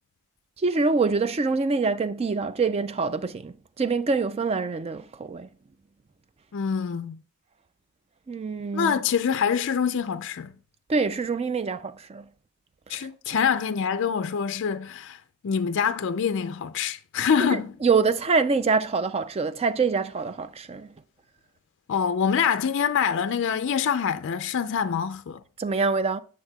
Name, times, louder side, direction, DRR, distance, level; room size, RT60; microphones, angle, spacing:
voice 1, 0.6-5.5 8.3-8.9 10.9-12.2 13.0-13.1 17.5-20.9 25.6-26.2, right 4 dB, 25° right, 0.3 m, -25 dB
voice 2, 6.5-7.2 8.7-10.5 12.9-15.2 15.4-17.8 21.9-25.4, left 7 dB, 55° left, 0.4 m, -25 dB
9.6 x 6.4 x 2.3 m
head